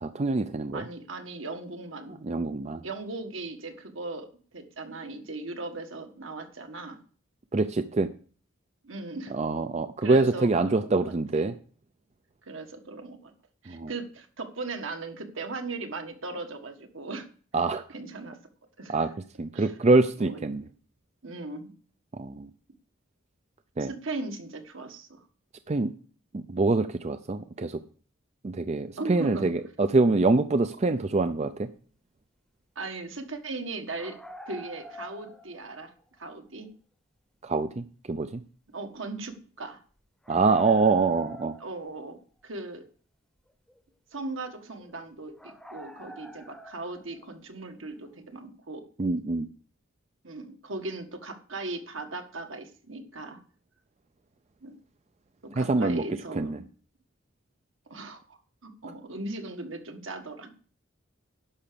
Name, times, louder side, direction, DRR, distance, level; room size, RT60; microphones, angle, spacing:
voice 1, 0.0-0.8 2.1-2.8 7.5-8.1 9.3-11.5 13.7-13.9 17.5-17.8 18.9-19.1 19.4-20.6 22.1-22.5 23.8-23.9 25.7-25.9 26.3-27.8 28.4-31.7 37.4-38.4 40.3-41.5 49.0-49.5 55.6-56.0 56.4-56.6, right 3 dB, 35° right, 10 dB, 0.4 m, -25 dB
voice 2, 0.7-2.2 2.8-7.0 8.8-9.3 10.0-11.0 11.3-11.5 12.4-13.3 13.6-17.3 17.9-18.4 18.8-19.0 19.5-19.7 20.2-20.4 21.2-21.7 23.8-25.2 29.0-29.5 32.7-34.2 34.5-35.9 36.2-36.7 38.7-39.8 41.6-42.2 42.4-42.8 44.1-48.8 50.2-53.4 54.6-54.8 55.4-56.6 57.9-60.5, right 2 dB, 75° right, 5 dB, 1.6 m, -38 dB
sound 1, 33.9-36.0 36.2-36.3 40.2-42.2 42.6-42.7 43.7-43.8 44.2-44.3 44.8-45.0 45.4-47.3, equal, 5° left, 0.8 m, -45 dB
11.0 x 5.8 x 6.8 m, 0.43 s
head